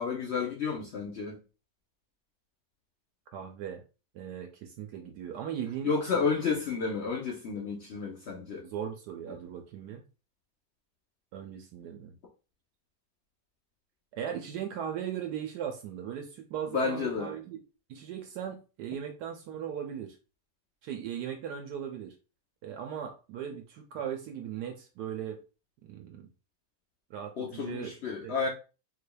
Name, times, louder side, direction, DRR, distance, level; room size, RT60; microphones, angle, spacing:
voice 1, 0.0-1.4 5.8-8.6 16.7-17.3 27.4-28.5, left 5 dB, 60° left, 0.6 m, -31 dB
voice 2, 3.3-3.8 4.1-6.2 8.6-10.0 11.3-12.2 14.1-17.6 17.9-20.2 20.8-22.1 22.6-25.4 25.8-26.3 27.1-27.9 28.2-28.5, right 9 dB, 75° right, 1.1 m, -38 dB
4.0 x 3.3 x 2.2 m
omnidirectional pair, 1.9 m